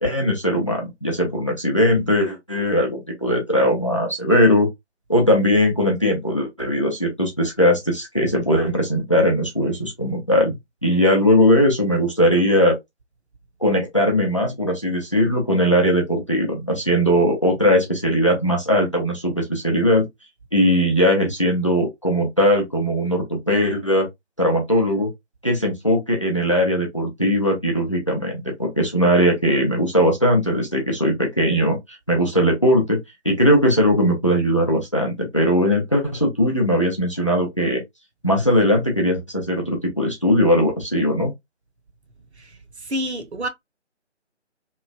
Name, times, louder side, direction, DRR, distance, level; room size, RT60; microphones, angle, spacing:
voice 1, 0.0-4.7 5.1-12.8 13.6-20.1 20.5-24.1 24.4-25.1 25.4-33.0 33.2-37.8 38.2-41.3, equal, 25° left, 0.6 m, -19 dB
voice 2, 42.4-43.5, equal, 65° right, 0.8 m, -29 dB
3.0 x 2.1 x 2.3 m
figure-of-eight pair, 155°, 35 cm